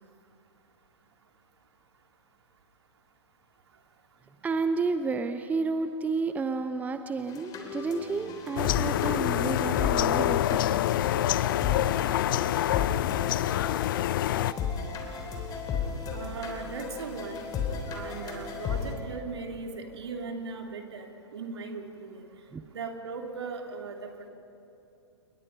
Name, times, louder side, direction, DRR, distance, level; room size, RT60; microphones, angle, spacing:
voice 1, 4.4-10.8 22.5-22.6, right 4 dB, 10° right, 9 dB, 0.7 m, -31 dB
sound 1, 7.3-18.9, left 6 dB, 25° left, 3.2 m, -35 dB
sound 2, 8.6-14.5, left 13 dB, 50° left, 0.5 m, -26 dB
voice 2, 16.1-17.5 17.9-22.2 22.7-24.3, right 4 dB, 65° right, 3 dB, 2.9 m, -38 dB
29.5 x 19.5 x 5.4 m, 2.9 s
figure-of-eight pair, 110°, 15 cm